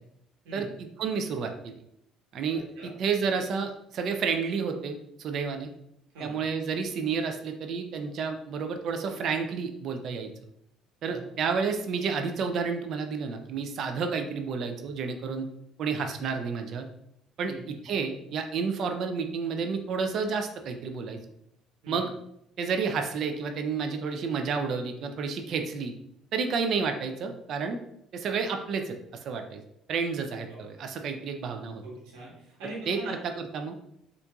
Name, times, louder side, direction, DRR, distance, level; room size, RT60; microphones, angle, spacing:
voice 1, 1.0-1.7 2.3-5.7 6.2-10.3 11.0-15.5 15.8-16.8 17.4-21.2 21.9-22.1 22.6-25.9 26.3-27.8 28.1-29.0 29.2-29.6 29.9-31.8 32.9-33.7, right 5 dB, 60° right, 6 dB, 0.4 m, -30 dB
voice 2, 2.5-2.9 6.1-6.3 11.0-11.2 17.4-17.6 21.8-22.0 30.5-30.6 31.8-33.1, right 2 dB, 90° right, -5 dB, 1.3 m, -43 dB
4.5 x 2.5 x 2.4 m, 0.75 s
supercardioid pair, 85°, 0 cm